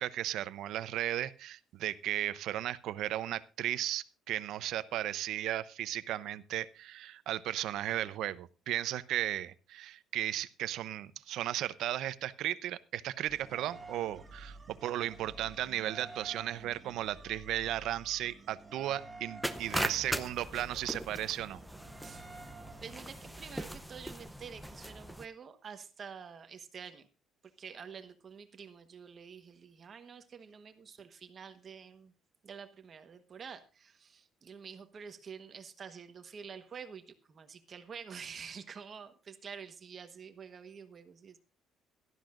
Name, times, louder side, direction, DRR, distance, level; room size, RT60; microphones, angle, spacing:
voice 1, 0.0-21.6, right 13 dB, 70° right, 15 dB, 0.7 m, -35 dB
sound 1, 13.3-24.2, right 3 dB, 15° right, 1.8 m, -51 dB
sound 2, 19.4-25.2, equal, ahead, 0.7 m, -39 dB
voice 2, 22.8-27.1 27.6-32.1 32.4-41.4, right 6 dB, 35° right, 8 dB, 1.2 m, -48 dB
17.5 x 12.5 x 2.5 m, 0.34 s
cardioid pair, 140°, 0 cm